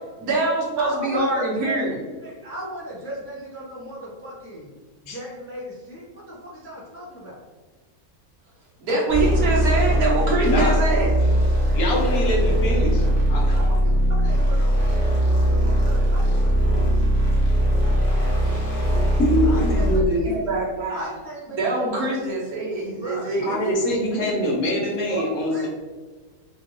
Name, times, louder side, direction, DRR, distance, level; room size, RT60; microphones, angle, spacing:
voice 1, 0.2-2.0 8.8-11.7 18.3-19.2 20.2-21.1 21.6-23.7, right 2 dB, 75° right, -4 dB, 1.6 m, -25 dB
voice 2, 0.8-1.8 2.2-4.7 5.0-7.4 13.5-16.5 19.4-20.4 20.9-22.1 22.9-24.4 25.1-25.7, equal, 15° left, -5 dB, 0.4 m, -36 dB
sound 1, 9.1-20.2, equal, 40° left, 1.0 m, -20 dB
voice 3, 11.7-13.6 19.2-20.2 23.4-25.7, left 1 dB, 70° left, -2 dB, 1.3 m, -24 dB
4.4 x 2.5 x 3.0 m, 1.4 s
omnidirectional pair, 1.6 m